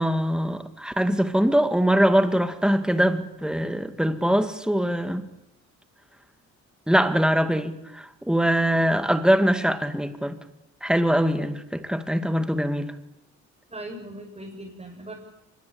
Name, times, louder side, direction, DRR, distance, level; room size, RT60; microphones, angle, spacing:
voice 1, 0.0-5.3 6.9-10.4 10.8-12.9, equal, 5° right, 2.1 m, -23 dB
voice 2, 13.7-15.1, right 1 dB, 20° right, 6.8 m, -39 dB
24.5 x 22.0 x 8.7 m
cardioid pair, 90°, 30 cm